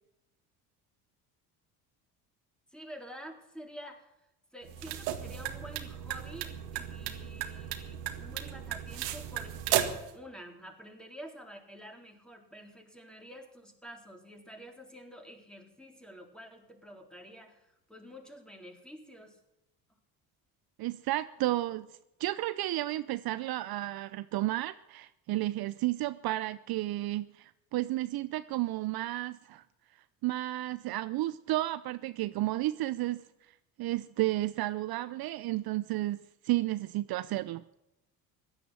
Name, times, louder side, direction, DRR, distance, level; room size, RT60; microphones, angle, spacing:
voice 1, 2.7-4.1 4.5-19.4, equal, ahead, 2 dB, 4.1 m, -49 dB
sound 1, 4.6-10.1, right 11 dB, 75° right, 2.0 m, -35 dB
voice 2, 20.8-21.9 22.2-29.6 30.2-33.2 33.8-37.6, right 16 dB, 55° right, 14 dB, 0.7 m, -32 dB
16.5 x 11.0 x 7.7 m, 0.88 s
hypercardioid pair, 70°, 45 cm